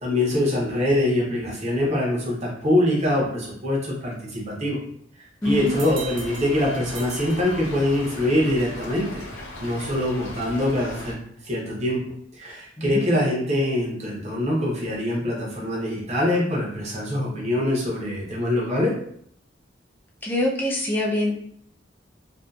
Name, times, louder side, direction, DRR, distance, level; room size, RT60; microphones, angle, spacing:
voice 1, 0.0-4.8 5.4-9.2 9.6-11.2 11.4-12.0 12.3-19.0, left 1 dB, 35° right, -3 dB, 0.7 m, -24 dB
Stream / Trickle dribble, 5.4-11.1, left 1 dB, 90° left, 0.6 m, -38 dB
voice 2, 5.4-5.7 12.8-13.0 20.2-21.3, left 1 dB, 10° left, -2 dB, 0.4 m, -24 dB
sound 1, 5.7-8.2, right 5 dB, 70° right, 0.5 m, -41 dB
2.6 x 2.3 x 2.3 m, 0.66 s
head